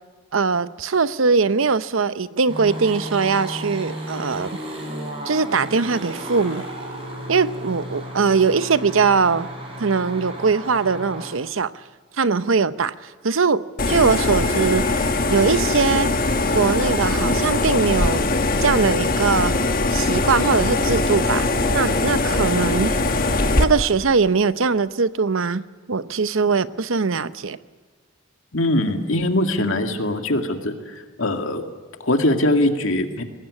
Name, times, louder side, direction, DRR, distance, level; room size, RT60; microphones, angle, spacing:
voice 1, 0.3-4.6 5.2-6.6 7.3-9.5 9.8-11.7 12.2-12.9 13.2-14.8 15.3-16.1 16.5-18.3 18.6-19.5 19.9-22.9 23.6-25.6 25.9-27.6, right 5 dB, 85° right, 14 dB, 0.8 m, -21 dB
sound 1, 2.5-11.3, right 1 dB, 30° right, 6.3 m, -33 dB
sound 2, 13.8-23.6, left 2 dB, 45° left, 1.5 m, -21 dB
voice 2, 28.5-31.6 32.0-33.2, left 1 dB, 85° left, 5 dB, 2.2 m, -22 dB
23.0 x 18.5 x 9.8 m, 1.4 s
head